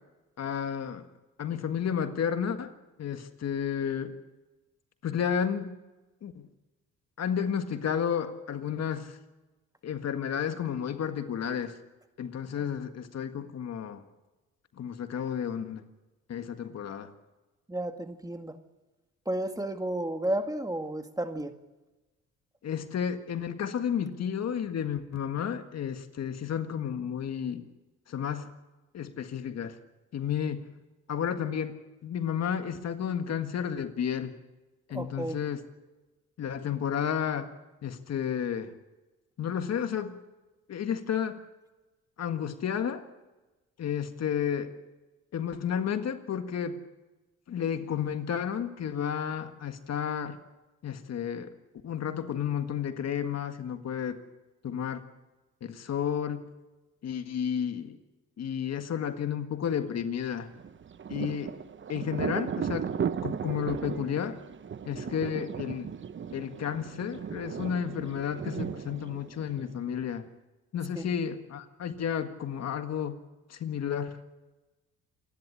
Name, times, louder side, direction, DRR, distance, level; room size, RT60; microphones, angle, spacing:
voice 1, 0.4-1.1 1.4-4.2 5.0-5.7 6.2-6.5 7.2-9.2 9.8-11.8 12.2-14.0 14.8-15.8 16.3-17.1 22.6-27.7 28.1-28.5 28.9-29.8 30.1-30.7 31.1-34.3 34.9-35.6 36.4-37.5 37.8-38.7 39.4-40.1 40.7-41.4 42.2-43.1 43.8-44.7 45.3-46.8 47.5-50.4 50.8-51.5 51.8-54.2 54.6-55.0 55.6-56.5 57.0-58.0 58.4-60.5 61.1-61.6 61.9-62.9 63.2-64.4 64.9-65.9 66.3-70.3 70.7-73.2 73.5-74.2, left 8 dB, 60° left, 8 dB, 1.8 m, -32 dB
voice 2, 17.7-18.6 19.3-21.5 34.9-35.4 71.0-71.1, right 1 dB, 10° right, 7 dB, 1.9 m, -32 dB
Thunder, 60.5-70.0, right 7 dB, 40° right, 0.9 m, -36 dB
27.5 x 11.5 x 10.0 m, 1.1 s
cardioid pair, 90°, 30 cm